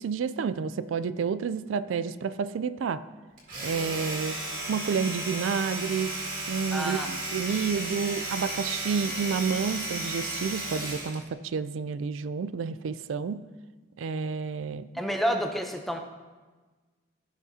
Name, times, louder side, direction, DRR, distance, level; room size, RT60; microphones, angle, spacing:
voice 1, 0.0-3.1 3.6-4.4 4.7-6.2 6.5-13.5 14.0-14.9, right 5 dB, 90° right, 14 dB, 0.4 m, -30 dB
Domestic sounds home sounds, 3.4-11.2, right 2 dB, 45° right, 2.1 m, -34 dB
voice 2, 6.7-7.1 14.9-16.0, equal, ahead, 4 dB, 0.6 m, -29 dB
14.5 x 6.0 x 2.8 m, 1.3 s
head